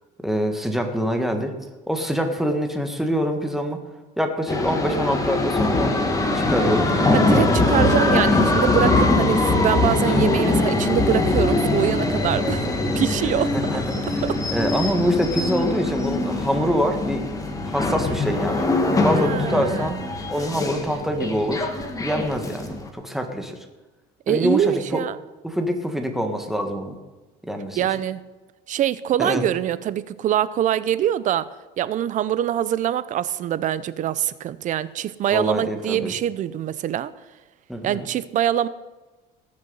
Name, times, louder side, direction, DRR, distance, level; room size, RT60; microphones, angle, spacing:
voice 1, 0.2-1.5 1.9-3.8 4.2-6.0 6.4-6.9 7.3-7.7 13.5-14.2 14.5-17.2 17.7-18.7 19.0-20.0 20.3-21.7 22.0-23.6 24.3-25.0 25.4-27.0 27.4-27.8 29.2-29.4 35.3-36.1 37.7-38.1, equal, ahead, 4 dB, 1.6 m, -25 dB
sound 1, 4.5-22.9, left 2 dB, 15° left, 1.5 m, -22 dB
voice 2, 7.1-12.7 12.9-13.5 14.2-14.4 19.1-20.1 24.3-25.2 27.8-28.2 28.7-31.5 31.8-37.1 37.8-38.7, right 11 dB, 40° right, 16 dB, 0.7 m, -24 dB
19.0 x 6.9 x 5.5 m, 1.2 s
cardioid pair, 135°, 19 cm